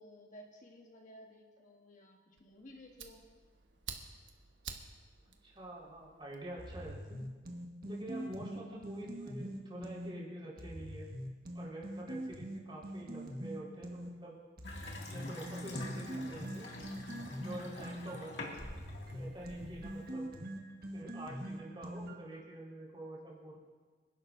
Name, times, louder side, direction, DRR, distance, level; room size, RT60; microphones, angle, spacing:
voice 1, 0.0-3.2 8.0-8.4, left 1 dB, 45° left, 1 dB, 1.3 m, -55 dB
Fire, 2.4-7.0, right 6 dB, 85° right, 1.2 m, -51 dB
voice 2, 5.4-7.2 7.8-11.1 11.5-14.4 15.1-16.7 17.4-18.5 19.1-20.3 20.9-23.6, right 1 dB, 25° right, -4 dB, 4.5 m, -47 dB
sound 1, 6.6-10.1 10.6-14.1 14.6-22.4, right 1 dB, 55° right, 1.5 m, -43 dB
Water tap faucet / Sink (filling or washing) / Bathtub (filling or washing), 14.6-20.1, left 1 dB, 70° left, 2.3 m, -45 dB
27.5 x 11.5 x 2.7 m, 1.4 s
head